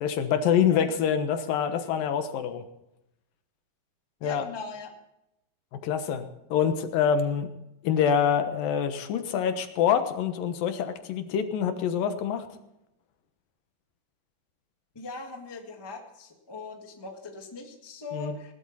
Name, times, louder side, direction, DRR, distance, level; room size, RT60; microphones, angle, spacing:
voice 1, 0.0-2.7 4.2-4.4 5.7-7.5 7.8-12.5 18.1-18.3, left 8 dB, 80° left, 8 dB, 2.9 m, -26 dB
voice 2, 4.2-4.9 14.9-18.5, left 3 dB, 15° left, 2 dB, 1.0 m, -40 dB
19.5 x 12.0 x 4.2 m, 0.86 s
omnidirectional pair, 4.0 m